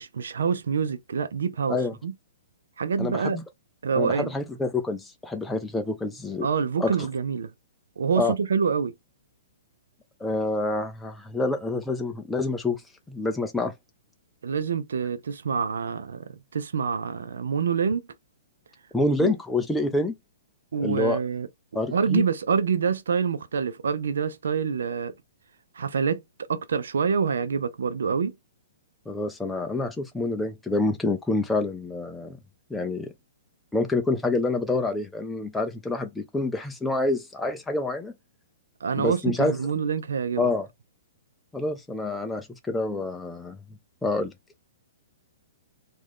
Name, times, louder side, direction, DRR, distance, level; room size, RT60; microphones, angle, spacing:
voice 1, 0.0-2.1 2.8-3.4 3.8-4.3 6.4-7.5 8.0-8.9 14.4-18.0 19.2-19.3 20.7-21.5 21.9-25.1 25.8-28.3 38.8-40.5, right 6 dB, 80° right, 0.5 m, -26 dB
voice 2, 3.0-3.4 4.0-6.5 6.8-7.0 8.2-8.3 10.2-13.7 18.9-20.1 20.8-21.2 21.7-22.2 29.1-32.4 32.7-33.1 33.7-38.1 39.0-39.6 40.4-40.7 41.5-43.6 44.0-44.3, left 2 dB, 5° left, 0.5 m, -27 dB
3.0 x 2.5 x 3.6 m
hypercardioid pair, 140°, 0 cm